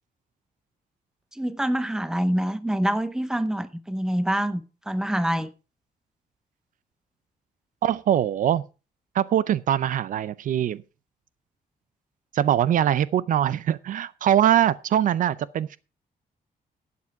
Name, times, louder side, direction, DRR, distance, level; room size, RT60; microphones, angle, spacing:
voice 1, 1.3-5.5, right 1 dB, 5° right, 0.7 m, -26 dB
voice 2, 7.8-8.6 9.1-10.8 12.3-15.8, right 10 dB, 60° right, 0.5 m, -22 dB
12.0 x 8.4 x 4.7 m
wide cardioid pair, 175°, 15 cm